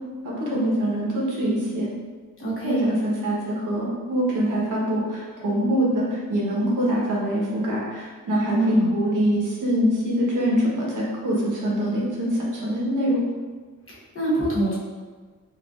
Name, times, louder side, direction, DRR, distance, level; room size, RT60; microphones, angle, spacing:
voice 1, 0.2-1.9 2.6-13.2, equal, 70° right, -5 dB, 1.0 m, -24 dB
voice 2, 2.4-2.8 8.5-8.9 13.9-14.7, right 1 dB, 40° left, -7 dB, 1.0 m, -25 dB
4.1 x 2.5 x 2.3 m, 1.4 s
wide cardioid pair, 165°, 33 cm